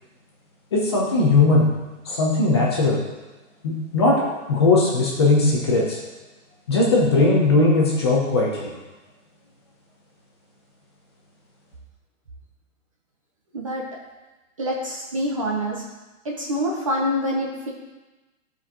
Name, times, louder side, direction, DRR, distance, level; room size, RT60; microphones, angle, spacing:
voice 1, 0.7-1.7 2.1-3.1 3.6-4.2 4.5-6.0 6.7-8.7, left 3 dB, 20° left, -3 dB, 0.8 m, -19 dB
voice 2, 13.5-13.9 14.6-15.8 16.2-17.7, equal, 25° right, -2 dB, 0.7 m, -26 dB
12.0 x 4.7 x 3.7 m, 1.1 s
hypercardioid pair, 175°, 41 cm